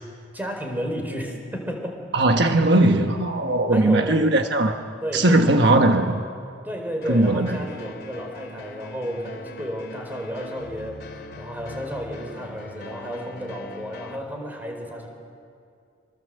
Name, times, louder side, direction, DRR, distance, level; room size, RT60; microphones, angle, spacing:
voice 1, 0.3-2.0 3.7-4.4 5.0-5.5 6.6-11.0 11.4-15.1, equal, 10° right, 2 dB, 4.5 m, -32 dB
voice 2, 2.1-4.8 5.1-6.2 7.1-7.6, right 2 dB, 60° right, 5 dB, 1.3 m, -19 dB
sound 1, 7.0-14.2, left 2 dB, 55° left, 2.6 m, -41 dB
26.0 x 25.5 x 7.8 m, 2.3 s
head